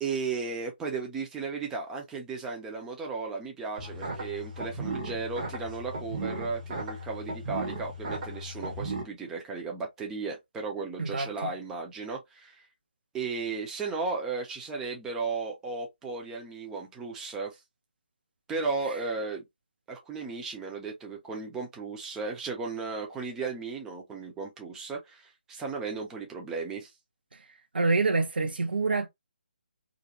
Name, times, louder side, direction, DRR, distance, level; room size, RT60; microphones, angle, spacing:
voice 1, 0.0-12.7 13.1-17.6 18.5-19.4 19.9-26.9, right 4 dB, 10° right, 0.5 m, -35 dB
sound 1, 3.8-9.0, right 2 dB, 40° right, 0.8 m, -36 dB
voice 2, 11.0-11.5 27.7-29.1, right 3 dB, 70° right, 0.7 m, -26 dB
2.5 x 2.1 x 2.8 m
figure-of-eight pair, 150°, 5 cm